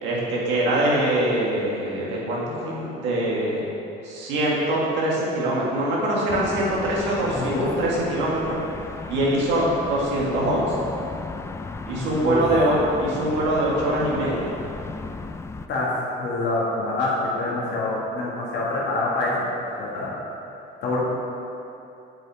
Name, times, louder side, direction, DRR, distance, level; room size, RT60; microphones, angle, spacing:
voice 1, 0.0-3.6 4.0-8.6 9.1-10.9 11.9-14.5, right 1 dB, 75° right, -5 dB, 1.9 m, -23 dB
sound 1, 6.3-15.7, left 3 dB, 15° left, 0.3 m, -35 dB
voice 2, 7.3-7.7 11.9-12.4 15.7-20.1 20.8-21.0, left 2 dB, 70° left, -5 dB, 1.8 m, -26 dB
7.5 x 5.7 x 4.8 m, 2.8 s
cardioid pair, 95°, 19 cm